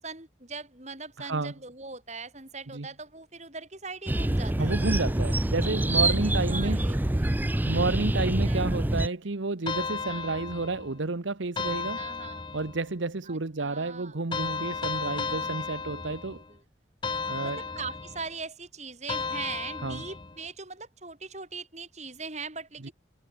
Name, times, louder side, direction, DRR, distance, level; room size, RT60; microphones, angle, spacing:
voice 1, 0.0-4.7 6.0-7.7 8.5-8.7 10.1-10.4 12.0-12.5 13.3-14.1 15.2-15.5 16.1-16.2 16.5-16.6 17.4-22.9, right 4 dB, 35° right, 5.8 m, -41 dB
voice 2, 1.2-1.5 2.7-2.9 4.6-6.9 7.6-12.0 12.5-16.4 17.3-17.6 19.8-20.0 22.8-22.9, right 3 dB, 80° right, 1.1 m, -31 dB
sound 1, 4.1-9.1, right 1 dB, 10° right, 0.4 m, -26 dB
sound 2, 9.7-11.0 11.6-12.9 14.3-16.5 17.0-18.3 19.1-20.4, left 4 dB, 25° left, 0.7 m, -34 dB
head